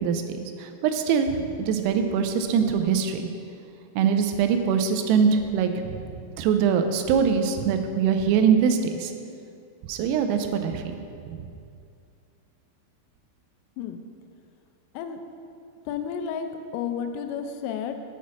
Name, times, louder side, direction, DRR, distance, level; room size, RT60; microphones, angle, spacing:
voice 1, 0.0-3.2 4.0-9.1 9.9-10.9 11.3-11.4, right 7 dB, 90° right, 6 dB, 3.2 m, -23 dB
voice 2, 15.9-16.5 16.7-17.9, left 7 dB, 85° left, 6 dB, 3.0 m, -31 dB
8.1 x 4.2 x 6.1 m, 2.5 s
omnidirectional pair, 5.8 m